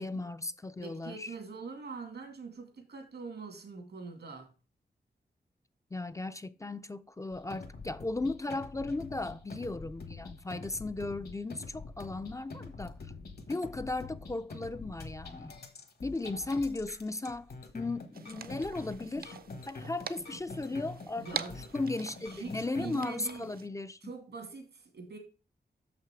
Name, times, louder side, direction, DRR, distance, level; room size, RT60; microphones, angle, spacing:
voice 1, 0.0-1.3 5.9-13.1 13.5-15.6 16.0-19.4 19.7-24.0, left 2 dB, 20° left, 0.3 m, -36 dB
voice 2, 0.8-4.5 20.7-20.9 21.2-21.6 22.3-23.5 24.0-25.2, right 4 dB, 90° right, 2.3 m, -44 dB
sound 1, 7.3-23.4, left 3 dB, 65° left, 1.4 m, -46 dB
sound 2, 18.1-23.7, right 6 dB, 60° right, 0.6 m, -44 dB
6.6 x 5.8 x 4.7 m
wide cardioid pair, 90°, 17 cm